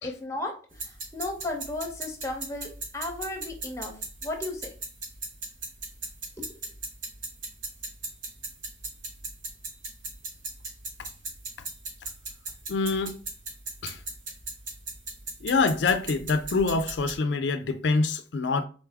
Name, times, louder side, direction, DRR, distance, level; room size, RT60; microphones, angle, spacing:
voice 1, 0.0-3.9 4.2-4.7 6.4-6.5, left 2 dB, 15° left, 0.8 m, -35 dB
sound 1, 0.7-17.2, right 3 dB, 80° right, 1.5 m, -39 dB
voice 2, 12.7-13.2 13.8-14.0 15.4-18.6, left 4 dB, 65° left, 0.4 m, -25 dB
4.0 x 3.4 x 3.4 m
head